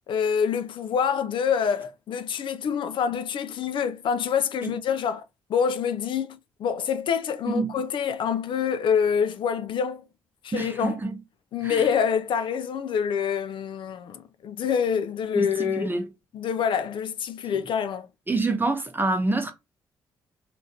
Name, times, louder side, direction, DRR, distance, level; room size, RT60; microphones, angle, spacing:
voice 1, 0.1-5.2 5.5-10.0 10.4-11.0 11.5-15.9 16.3-18.1, left 7 dB, 60° left, 0.4 m, -26 dB
voice 2, 10.5-11.1 11.6-11.8 15.4-16.1 18.3-19.5, right 3 dB, 20° right, 0.9 m, -26 dB
3.0 x 2.5 x 2.7 m
hypercardioid pair, 45°, 10 cm